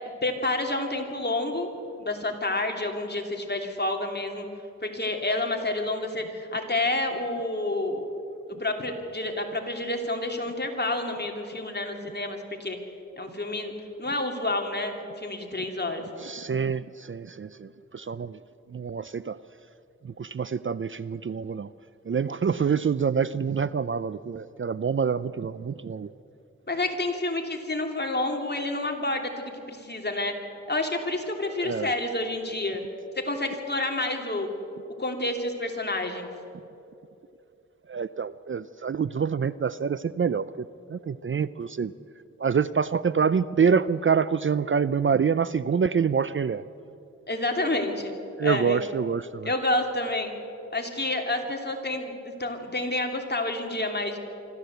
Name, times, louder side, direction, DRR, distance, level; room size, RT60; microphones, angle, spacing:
voice 1, 0.2-1.7 2.0-4.5 4.8-8.1 8.6-12.8 13.2-13.7 14.0-16.0 26.7-30.3 30.7-32.8 33.2-34.5 35.0-36.3 47.3-48.1 48.4-48.8 49.4-50.4 50.7-54.2, left 2 dB, 35° left, 3 dB, 3.0 m, -29 dB
voice 2, 16.2-17.7 17.9-18.4 18.7-19.4 20.0-21.7 22.1-26.1 31.6-31.9 37.9-41.9 42.4-46.6 48.4-49.5, right 6 dB, 45° right, 16 dB, 0.5 m, -26 dB
25.5 x 13.5 x 8.0 m, 2.7 s
cardioid pair, 60°, 29 cm